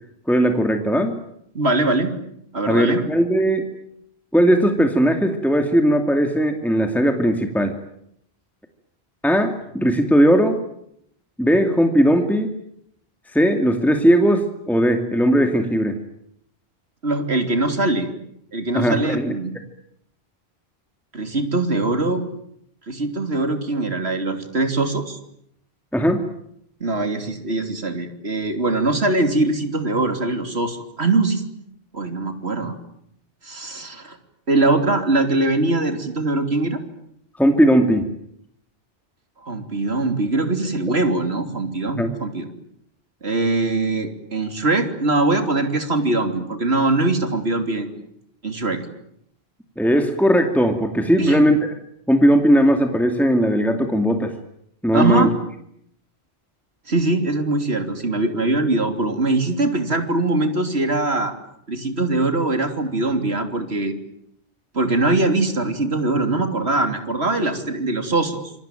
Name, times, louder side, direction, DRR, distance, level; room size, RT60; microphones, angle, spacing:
voice 1, 0.3-1.2 2.7-3.7 4.3-7.8 9.2-10.6 11.4-12.5 13.3-16.0 18.7-19.3 25.9-26.2 37.4-38.1 42.0-42.1 49.8-51.6 52.1-54.3 54.8-55.3, equal, ahead, 5 dB, 2.4 m, -18 dB
voice 2, 1.5-2.1 2.5-3.0 17.0-18.1 18.5-19.5 21.1-22.2 22.9-25.2 26.8-31.4 31.9-32.7 33.4-34.2 34.5-36.8 39.4-42.5 43.2-48.0 48.4-48.8 51.2-51.5 54.9-55.3 56.9-61.3 61.7-63.9 64.7-68.5, right 2 dB, 80° right, 7 dB, 3.5 m, -22 dB
27.0 x 24.0 x 9.1 m, 0.73 s
omnidirectional pair, 1.1 m